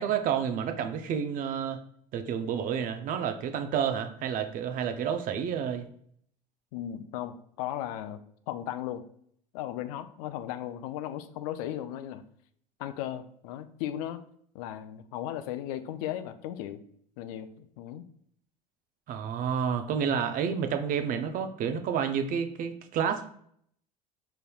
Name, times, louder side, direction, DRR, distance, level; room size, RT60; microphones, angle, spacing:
voice 1, 0.0-1.8 2.1-5.9 19.1-23.3, right 7 dB, 40° right, 8 dB, 0.5 m, -30 dB
voice 2, 6.7-9.0 9.5-12.2 12.8-14.2 14.5-16.8 17.2-18.1, left 11 dB, 60° left, 11 dB, 0.4 m, -36 dB
5.2 x 3.4 x 2.3 m, 0.65 s
hypercardioid pair, 75°, 21 cm